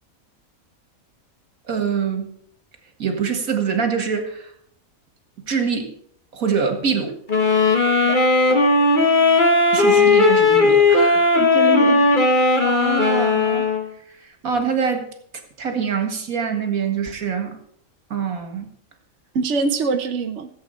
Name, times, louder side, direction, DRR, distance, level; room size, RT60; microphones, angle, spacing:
voice 1, 1.7-2.3 3.0-4.5 5.5-5.9 6.3-7.2 9.7-11.2 12.6-13.7 14.4-15.1 15.6-17.6 18.1-18.7, right 6 dB, 75° right, 6 dB, 2.2 m, -24 dB
sound 1, 7.3-13.9, left 3 dB, 35° left, 1.8 m, -16 dB
voice 2, 11.4-12.1 19.3-20.5, right 3 dB, 55° right, 6 dB, 1.1 m, -24 dB
15.0 x 8.1 x 5.6 m, 0.65 s
omnidirectional pair, 1.5 m